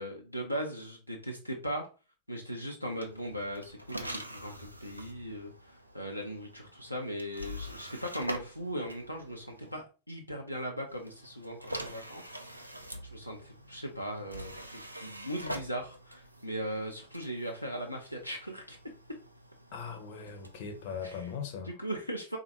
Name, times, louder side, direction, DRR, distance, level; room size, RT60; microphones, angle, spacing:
voice 1, 0.0-1.9 2.3-12.2 12.5-12.7 13.0-18.8 21.0-21.3 21.6-22.4, equal, 90° left, 0.5 m, -38 dB
sound 1, 2.9-9.8 10.9-21.4, equal, 90° right, 0.4 m, -45 dB
voice 2, 19.7-21.7, left 6 dB, 50° left, 0.7 m, -39 dB
3.6 x 2.4 x 2.8 m
figure-of-eight pair, 90°, 0 cm